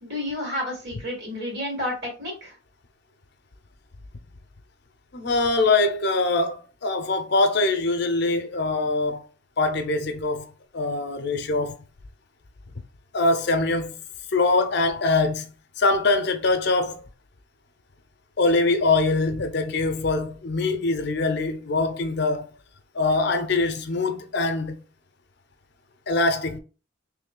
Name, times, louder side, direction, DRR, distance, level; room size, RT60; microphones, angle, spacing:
voice 1, 0.0-2.5, left 1 dB, 55° right, 2.0 m, -31 dB
voice 2, 5.1-9.2 9.6-10.5 10.7-11.7 13.1-14.0 14.3-15.4 15.8-17.1 18.4-22.4 22.9-24.8 26.1-26.6, left 3 dB, 55° left, 0.6 m, -23 dB
3.1 x 3.1 x 3.7 m
head